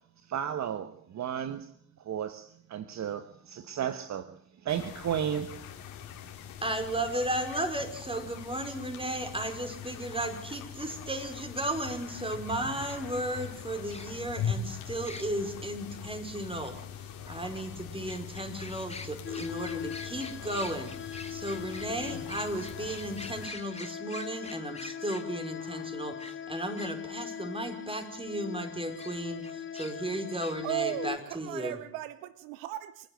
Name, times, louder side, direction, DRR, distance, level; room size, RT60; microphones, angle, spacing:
voice 1, 0.3-1.7 2.1-4.3 4.6-5.5, right 9 dB, 50° right, 11 dB, 1.2 m, -33 dB
sound 1, 4.7-23.5, left 8 dB, 75° left, 3.6 m, -42 dB
voice 2, 6.6-31.8, right 1 dB, 15° right, 7 dB, 5.0 m, -35 dB
sound 2, 12.9-13.0 13.9-14.3 15.0-15.3 17.5-17.6 18.1-26.9 29.0-29.1 29.4-30.6 30.8-31.0, left 3 dB, 20° left, 2.4 m, -45 dB
sound 3, 19.2-31.2, left 9 dB, 35° left, 0.9 m, -40 dB
voice 3, 30.6-33.1, right 15 dB, 80° right, 16 dB, 0.9 m, -36 dB
28.0 x 10.5 x 9.3 m, 0.70 s
hypercardioid pair, 55°, 35 cm